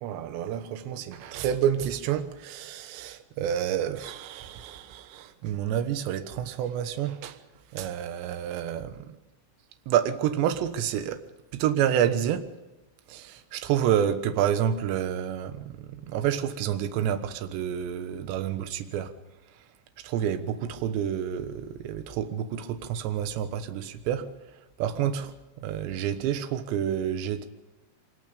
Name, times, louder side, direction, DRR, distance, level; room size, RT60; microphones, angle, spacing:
voice 1, 0.0-7.4 7.7-9.2 9.9-11.2 11.5-12.5 13.1-19.1 20.0-24.3 24.8-27.5, right 9 dB, 70° right, 3.1 m, -29 dB
24.5 x 21.0 x 5.2 m
omnidirectional pair, 5.9 m